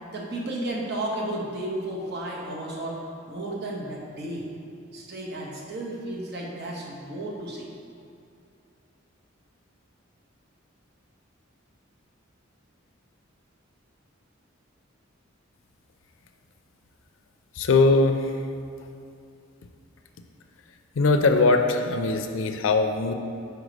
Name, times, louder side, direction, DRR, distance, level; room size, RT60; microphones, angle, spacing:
voice 1, 0.1-3.0 3.3-4.5 4.9-7.7, right 1 dB, 55° right, -2 dB, 0.9 m, -33 dB
voice 2, 17.6-18.3 21.0-23.1, left 3 dB, 70° left, 6 dB, 0.4 m, -21 dB
4.8 x 4.6 x 5.1 m, 2.5 s
head